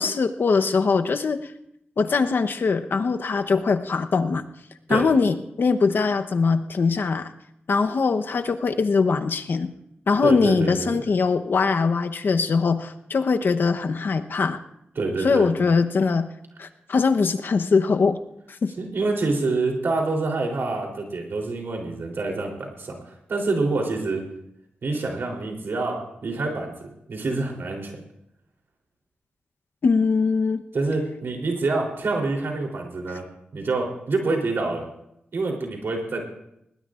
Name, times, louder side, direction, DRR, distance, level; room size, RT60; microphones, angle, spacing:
voice 1, 0.0-1.5 2.0-4.4 4.9-7.3 7.7-9.7 10.1-14.6 15.2-16.3 16.6-18.2 18.5-18.7 29.8-30.6, left 4 dB, 65° left, 8 dB, 0.9 m, -22 dB
voice 2, 10.2-11.0 15.0-15.5 18.8-23.0 23.3-24.2 24.8-28.0 30.7-33.3 33.5-34.9 35.3-36.2, right 3 dB, 70° right, 1 dB, 3.4 m, -26 dB
20.0 x 19.0 x 2.5 m, 0.79 s
cardioid pair, 70°, 4 cm